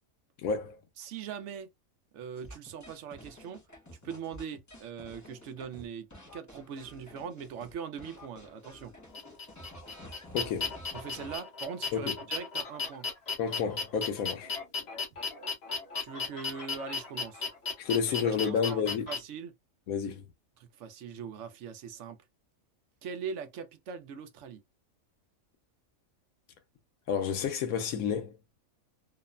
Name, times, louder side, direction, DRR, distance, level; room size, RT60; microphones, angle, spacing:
voice 1, 0.4-0.8 10.3-10.7 11.9-12.1 13.4-14.5 17.8-19.1 19.9-20.2 27.1-28.4, left 7 dB, 85° left, 1.1 m, -30 dB
voice 2, 1.0-1.7 2.1-3.6 4.0-8.9 10.9-13.1 16.0-17.5 18.1-19.5 20.6-22.2 23.0-24.6, right 6 dB, 65° right, 0.8 m, -41 dB
sound 1, 2.4-7.7 8.0-11.4, equal, 20° left, 0.6 m, -50 dB
sound 2, 9.1-19.2, left 5 dB, 50° left, 1.1 m, -35 dB
2.9 x 2.0 x 2.3 m
omnidirectional pair, 1.5 m